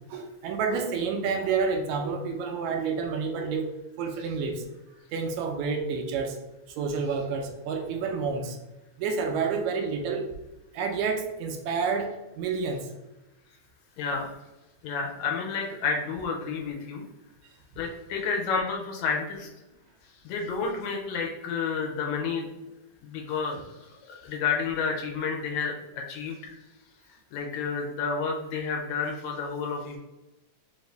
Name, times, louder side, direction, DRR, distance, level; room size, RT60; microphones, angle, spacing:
voice 1, 0.1-4.6 5.1-6.4 6.8-8.6 9.0-10.3 10.7-12.9 17.4-17.5, right 5 dB, 80° right, 3 dB, 1.8 m, -29 dB
voice 2, 14.0-14.3 14.8-17.1 17.8-19.5 20.2-22.5 23.0-23.8 24.1-26.5 27.3-30.0, left 5 dB, 75° left, 1 dB, 1.9 m, -30 dB
4.7 x 2.5 x 3.2 m, 1.0 s
omnidirectional pair, 3.4 m